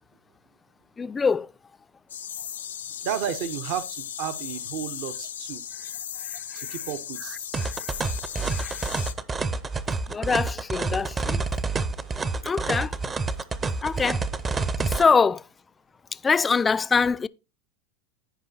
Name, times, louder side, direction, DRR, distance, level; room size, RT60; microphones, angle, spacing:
voice 1, 1.0-1.5 6.2-6.7 7.6-7.7 8.5-8.9 10.1-11.4 12.4-13.0 13.8-14.2 14.8-15.5 16.1-17.3, left 5 dB, 20° left, 0.3 m, -24 dB
sound 1, 2.1-9.1, left 9 dB, 90° left, 0.7 m, -36 dB
voice 2, 3.0-5.6 6.5-7.5 13.7-13.8, right 9 dB, 60° right, 0.8 m, -32 dB
sound 2, 7.5-15.0, right 3 dB, 20° right, 0.6 m, -28 dB
14.5 x 5.0 x 2.8 m
hypercardioid pair, 100°, 0 cm